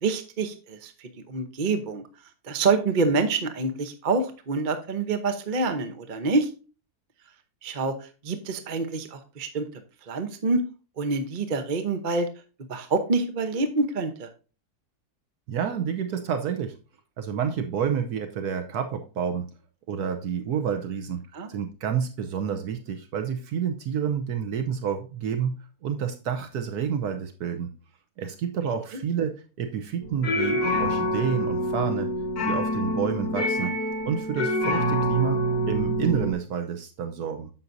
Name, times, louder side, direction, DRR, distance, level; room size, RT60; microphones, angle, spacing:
voice 1, 0.0-2.0 2.4-6.5 7.6-9.7 10.1-10.6 11.0-12.3 12.7-14.3 21.3-21.5 28.9-29.0 33.6-33.7, right 3 dB, 35° right, 7 dB, 0.9 m, -27 dB
voice 2, 15.5-16.8 17.2-19.5 19.9-21.2 21.5-25.5 25.8-27.7 28.2-29.3 29.6-32.1 32.5-33.7 34.1-37.5, right 7 dB, 75° right, 7 dB, 1.3 m, -29 dB
sound 1, 30.0-36.3, equal, 80° left, 2.0 m, -26 dB
9.7 x 7.3 x 2.6 m, 0.34 s
omnidirectional pair, 1.7 m